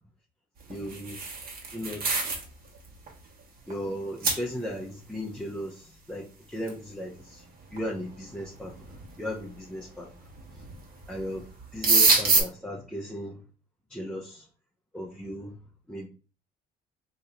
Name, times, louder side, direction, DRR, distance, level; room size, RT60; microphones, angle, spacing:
voice 1, 0.7-1.2 1.7-2.3 3.7-7.4 7.7-10.1 11.1-13.4 13.9-14.5 14.9-15.6 15.9-16.1, equal, 5° left, 0.6 m, -36 dB
sound 1, 0.7-2.5 2.8-3.1 3.7-3.8 4.2-4.4 6.7-6.8 7.8-7.9 8.6-9.0 10.3-10.7 11.0-11.2 11.5-12.4, right 3 dB, 60° right, 1.3 m, -24 dB
2.8 x 2.5 x 4.3 m
cardioid pair, 110°, 17 cm